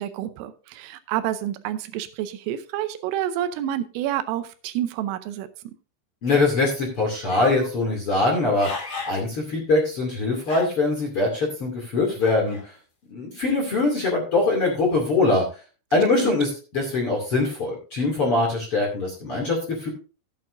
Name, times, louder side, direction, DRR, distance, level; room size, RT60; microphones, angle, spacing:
voice 1, 0.0-5.8 16.2-16.4, right 11 dB, 85° right, 3.3 m, -29 dB
voice 2, 6.2-12.7 13.1-15.4 15.9-19.9, left 3 dB, 40° left, 2.3 m, -23 dB
sound 1, 7.3-7.7 8.3-9.2 9.7-9.8 10.4-11.0 12.2-12.6, left 3 dB, 75° left, 0.9 m, -34 dB
15.0 x 8.7 x 2.6 m
omnidirectional pair, 5.9 m